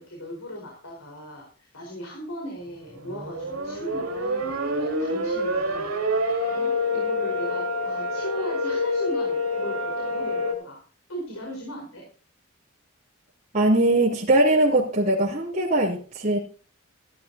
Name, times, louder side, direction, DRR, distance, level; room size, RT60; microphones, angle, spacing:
voice 1, 0.0-10.8 11.1-12.0, equal, 85° left, 4.7 m, -38 dB
sound 1, 2.8-10.5, left 1 dB, 85° right, 2.7 m, -27 dB
voice 2, 13.5-16.4, right 1 dB, 35° right, 3.1 m, -21 dB
15.5 x 12.5 x 2.8 m
head